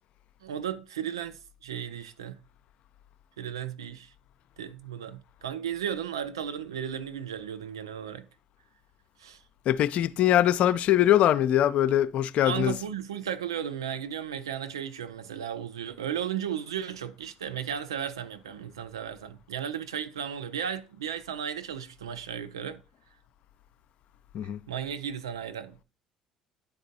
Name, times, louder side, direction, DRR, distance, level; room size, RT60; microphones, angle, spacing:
voice 1, 0.4-2.4 3.4-4.1 4.6-8.3 9.2-9.4 12.4-22.8 24.7-25.8, right 8 dB, 85° right, 0.4 m, -35 dB
voice 2, 9.7-12.7 24.3-24.6, left 12 dB, 60° left, 0.4 m, -22 dB
10.5 x 3.9 x 2.7 m
hypercardioid pair, 60°, 2 cm